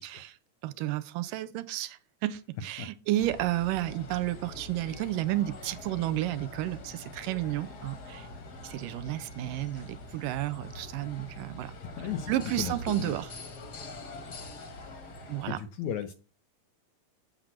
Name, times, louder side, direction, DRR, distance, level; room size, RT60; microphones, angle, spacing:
voice 1, 0.0-0.4 0.6-8.3 8.6-11.7 12.3-13.3 15.3-15.6, right 15 dB, 80° right, 2.2 m, -32 dB
sound 1, 3.2-15.5, left 1 dB, 60° left, 1.0 m, -44 dB
voice 2, 12.0-13.2 15.5-16.1, left 8 dB, 75° left, 1.8 m, -35 dB
8.4 x 5.2 x 7.6 m
omnidirectional pair, 4.0 m